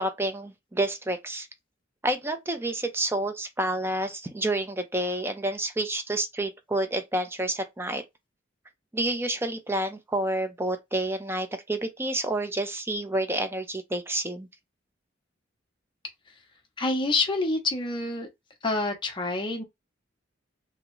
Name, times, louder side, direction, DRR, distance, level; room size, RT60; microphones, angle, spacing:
voice 1, 0.0-1.5 2.0-8.0 8.9-14.5, right 1 dB, 10° right, 0.5 m, -29 dB
voice 2, 16.8-18.3 18.6-19.6, left 2 dB, 25° left, 0.7 m, -27 dB
3.5 x 2.1 x 3.0 m
head